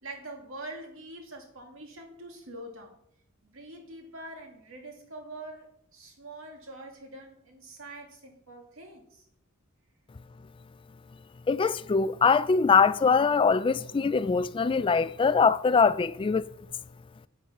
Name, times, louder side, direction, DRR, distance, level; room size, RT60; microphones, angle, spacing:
voice 1, 0.0-2.9 3.4-9.2, right 2 dB, 70° right, 2.6 m, -44 dB
voice 2, 11.5-16.4, left 5 dB, 25° left, 0.3 m, -23 dB
8.7 x 8.1 x 5.8 m
head